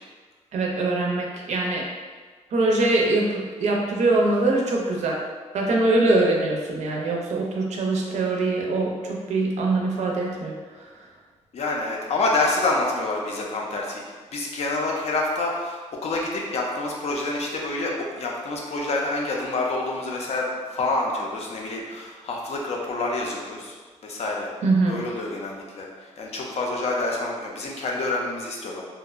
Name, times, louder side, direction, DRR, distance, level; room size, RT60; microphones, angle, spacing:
voice 1, 0.5-1.8 2.5-5.2 5.5-10.5 24.6-25.0, right 2 dB, 65° right, -1 dB, 0.4 m, -23 dB
voice 2, 11.5-14.0 14.3-23.8 24.0-24.5 24.9-28.8, left 2 dB, 60° left, -1 dB, 0.5 m, -27 dB
2.7 x 2.1 x 2.3 m, 1.5 s
wide cardioid pair, 135°, 12 cm